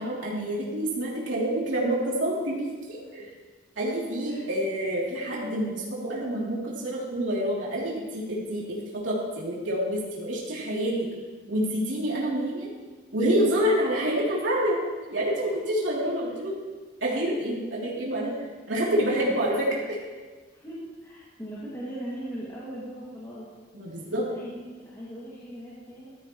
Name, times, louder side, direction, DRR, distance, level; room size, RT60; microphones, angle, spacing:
voice 1, 0.0-3.3 3.8-8.8 9.0-11.0 11.5-12.7 13.1-14.8 15.1-16.6 17.0-18.3 18.7-19.7 23.7-24.3, right 1 dB, 85° right, -6 dB, 3.2 m, -27 dB
voice 2, 20.5-23.5 24.2-26.1, right 1 dB, 20° left, -9 dB, 2.2 m, -39 dB
15.0 x 13.5 x 3.2 m, 1.4 s
head